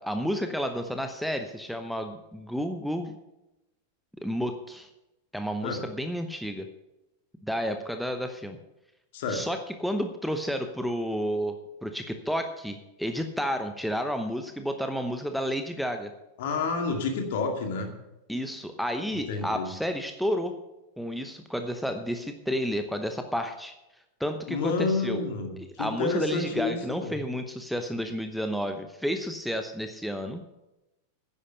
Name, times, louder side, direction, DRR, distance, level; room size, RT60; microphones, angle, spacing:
voice 1, 0.0-3.1 4.2-4.9 5.3-6.7 7.4-8.6 9.3-11.6 11.8-16.1 18.3-20.5 21.0-23.7 24.2-25.2 25.6-30.4, equal, ahead, 6 dB, 0.9 m, -31 dB
voice 2, 16.4-17.9 19.3-19.7 24.5-27.2, left 4 dB, 55° left, 4 dB, 2.3 m, -29 dB
10.5 x 9.8 x 6.7 m, 0.94 s
figure-of-eight pair, 90°, 0 cm